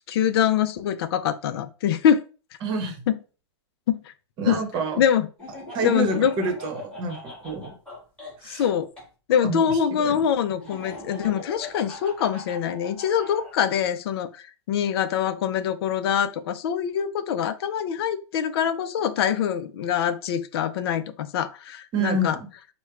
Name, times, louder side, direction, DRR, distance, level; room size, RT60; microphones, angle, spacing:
voice 1, 0.1-2.3 3.1-3.2 3.9-4.0 4.5-4.6 5.0-5.3 5.8-6.3 8.4-8.9 9.3-22.4, left 8 dB, 55° left, 11 dB, 0.5 m, -24 dB
voice 2, 2.6-3.1 4.4-5.0 5.7-7.7 8.4-8.6 9.4-10.2 21.9-22.5, right 2 dB, 30° right, 4 dB, 1.0 m, -28 dB
Laughter, 5.4-9.1 10.6-13.5, left 2 dB, 5° left, 1.8 m, -40 dB
4.3 x 2.2 x 2.4 m, 0.34 s
hypercardioid pair, 125°, 15 cm